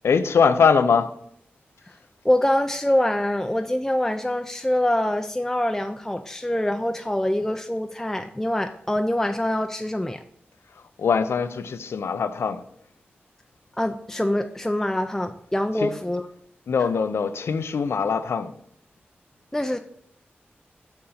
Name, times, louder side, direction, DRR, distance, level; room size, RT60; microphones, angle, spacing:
voice 1, 0.0-1.1 11.0-12.6 15.8-15.9 16.7-18.5, left 6 dB, 80° left, 0.4 m, -22 dB
voice 2, 2.2-10.2 13.8-16.3 19.5-19.8, left 1 dB, 10° left, 0.4 m, -24 dB
6.9 x 2.6 x 5.6 m
cardioid pair, 50°, 4 cm